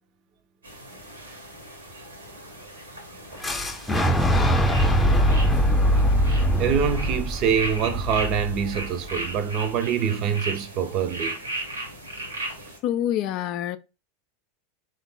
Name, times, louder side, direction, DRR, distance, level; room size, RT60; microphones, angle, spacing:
sound 1, 0.6-12.8, right 2 dB, 85° right, 1.2 m, -37 dB
Fire / Explosion, 3.4-9.3, equal, 10° left, 0.7 m, -22 dB
voice 1, 6.6-11.4, right 7 dB, 45° right, 0.5 m, -25 dB
voice 2, 12.8-13.8, left 11 dB, 45° left, 0.3 m, -26 dB
3.6 x 2.4 x 3.6 m
figure-of-eight pair, 85°, 0 cm